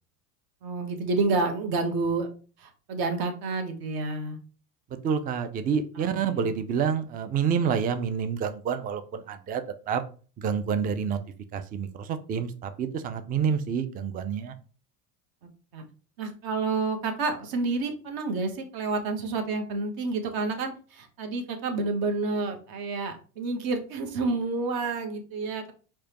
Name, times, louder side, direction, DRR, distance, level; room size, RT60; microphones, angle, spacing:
voice 1, 0.6-2.3 2.6-4.4 6.0-6.5 15.7-15.9 16.2-25.7, right 3 dB, 50° right, 5 dB, 1.1 m, -29 dB
voice 2, 4.9-10.0 10.4-11.2 11.5-14.5, right 7 dB, 20° right, 10 dB, 0.3 m, -28 dB
4.7 x 2.3 x 2.9 m, 0.38 s
hypercardioid pair, 80°, 45 cm